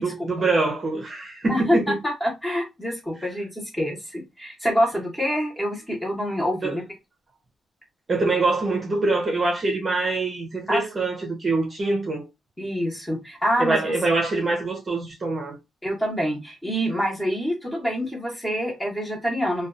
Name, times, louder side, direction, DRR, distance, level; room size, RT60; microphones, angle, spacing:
voice 1, 0.0-2.0 6.6-6.8 8.1-12.3 13.6-15.6, right 3 dB, 35° right, 0.7 m, -24 dB
voice 2, 1.5-1.9 2.2-6.8 10.7-10.8 12.6-13.8 15.8-19.7, equal, 10° left, 1.1 m, -26 dB
2.5 x 2.3 x 2.5 m
cardioid pair, 120°, 0 cm